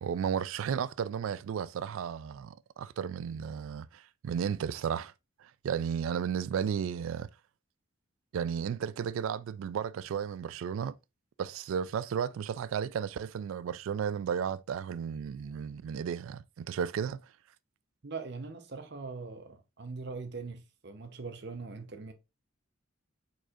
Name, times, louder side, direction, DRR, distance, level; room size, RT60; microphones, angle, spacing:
voice 1, 0.0-5.1 5.4-7.3 8.3-10.9 11.4-17.2, right 7 dB, 75° right, 0.3 m, -34 dB
voice 2, 18.0-22.1, right 4 dB, 55° right, 0.8 m, -41 dB
4.8 x 4.3 x 2.4 m
head